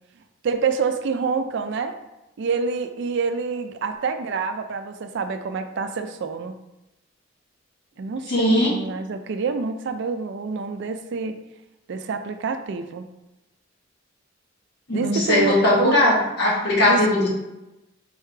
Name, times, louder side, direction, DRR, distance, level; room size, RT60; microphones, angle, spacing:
voice 1, 0.4-1.9 2.4-6.5 8.0-11.4 11.9-13.1 14.9-16.0 16.9-17.0, right 5 dB, 65° right, 9 dB, 0.4 m, -27 dB
voice 2, 8.3-8.7 14.9-17.3, left 1 dB, 60° left, -5 dB, 1.5 m, -19 dB
4.6 x 3.2 x 3.3 m, 0.97 s
head